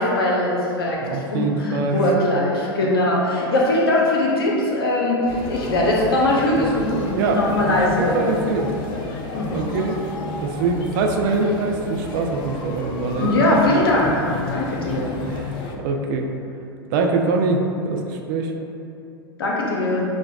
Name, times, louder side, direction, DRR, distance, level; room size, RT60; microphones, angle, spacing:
voice 1, 0.0-1.0 1.3-8.3 9.3-9.6 13.2-15.1 19.4-20.0, left 1 dB, 70° left, -3 dB, 0.8 m, -21 dB
voice 2, 1.0-2.1 7.1-8.7 9.5-10.0 10.4-13.6 15.3-16.3 16.9-18.5, right 3 dB, 50° right, 2 dB, 0.4 m, -24 dB
sound 1, 5.3-15.8, left 2 dB, 40° left, 0.5 m, -31 dB
6.1 x 2.3 x 2.3 m, 2.6 s
figure-of-eight pair, 90°, 13 cm